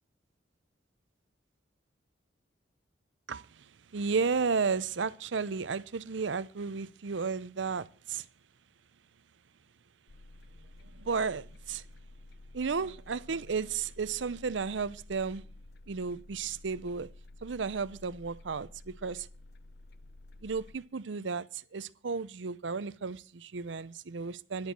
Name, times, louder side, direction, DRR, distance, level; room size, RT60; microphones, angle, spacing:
voice 1, 3.3-8.3 10.9-11.8 12.5-15.4 15.9-17.1 17.4-19.3 20.4-24.7, right 5 dB, 75° right, 0.6 m, -33 dB
sound 1, 10.1-20.8, left 2 dB, 55° left, 0.6 m, -52 dB
10.5 x 8.2 x 7.9 m
head